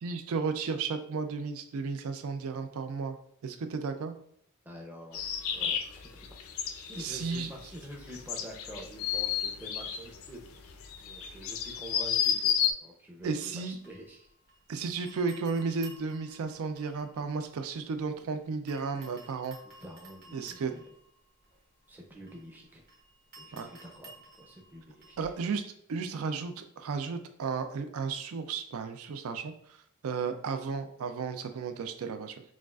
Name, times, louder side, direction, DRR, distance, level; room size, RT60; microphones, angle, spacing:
voice 1, 0.0-3.2 3.4-4.1 7.0-7.5 13.2-13.8 14.7-19.6 20.3-20.7 23.5-23.7 25.2-25.6 25.9-29.5 30.0-32.4, right 5 dB, 75° right, 7 dB, 0.4 m, -33 dB
voice 2, 4.6-5.2 5.5-6.4 6.8-10.6 11.0-14.3 19.8-20.9 21.9-22.8 23.4-25.2, equal, 10° right, -1 dB, 0.6 m, -47 dB
sound 1, 5.1-12.7, left 8 dB, 70° left, 0.4 m, -31 dB
sound 2, 13.2-14.7 15.1-18.3 18.7-25.5, right 2 dB, 50° right, 1.2 m, -55 dB
6.1 x 2.4 x 2.4 m, 0.68 s
head